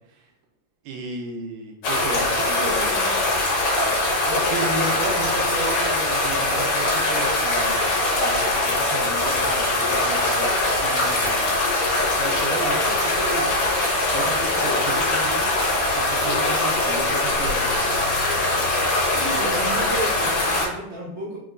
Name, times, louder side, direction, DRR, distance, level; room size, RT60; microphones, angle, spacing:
voice 1, 0.8-3.1 4.3-11.5 12.2-13.5 14.0-15.6 15.9-17.9, right 3 dB, 80° right, 1 dB, 2.2 m, -33 dB
sound 1, 1.8-20.7, left 2 dB, 65° left, 2.0 m, -22 dB
voice 2, 19.1-21.4, right 1 dB, 55° right, -8 dB, 0.7 m, -31 dB
5.2 x 3.0 x 2.4 m, 0.78 s
omnidirectional pair, 3.9 m